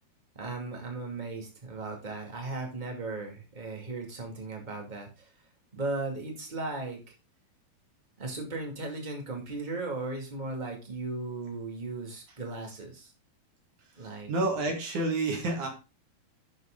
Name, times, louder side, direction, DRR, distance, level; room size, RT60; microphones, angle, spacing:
voice 1, 0.3-5.5 5.7-7.0 8.2-13.1 14.0-14.3, right 3 dB, 20° right, 1 dB, 1.4 m, -37 dB
voice 2, 14.3-15.7, right 2 dB, 55° right, 2 dB, 3.3 m, -29 dB
11.5 x 6.3 x 3.7 m, 0.29 s
omnidirectional pair, 4.4 m